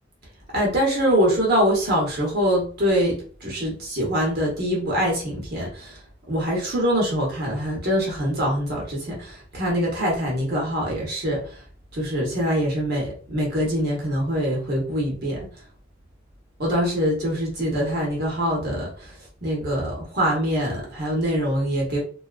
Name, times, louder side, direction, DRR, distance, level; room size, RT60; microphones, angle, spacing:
voice 1, 0.5-6.0 6.3-11.6 11.9-15.5 16.6-22.0, equal, 55° right, -3 dB, 0.9 m, -24 dB
2.6 x 2.3 x 2.3 m, 0.43 s
head